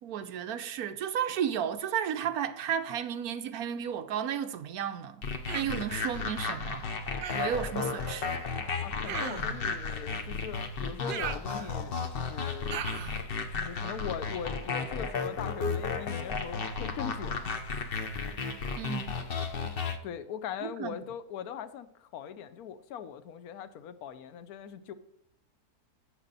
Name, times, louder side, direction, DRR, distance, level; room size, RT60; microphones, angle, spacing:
voice 1, 0.0-5.2 5.5-6.9 7.3-8.4 18.8-19.2 20.6-21.0, right 9 dB, 70° right, 1.2 m, -33 dB
sound 1, 5.2-20.0, left 4 dB, 40° left, 0.9 m, -34 dB
Human voice, 5.5-5.8 7.2-7.7 9.0-9.6 11.1-12.0 12.7-13.2, right 7 dB, 85° right, 0.4 m, -38 dB
voice 2, 8.8-12.8 13.5-17.5 20.0-24.9, left 8 dB, 65° left, 1.2 m, -40 dB
12.0 x 8.2 x 4.1 m
omnidirectional pair, 1.8 m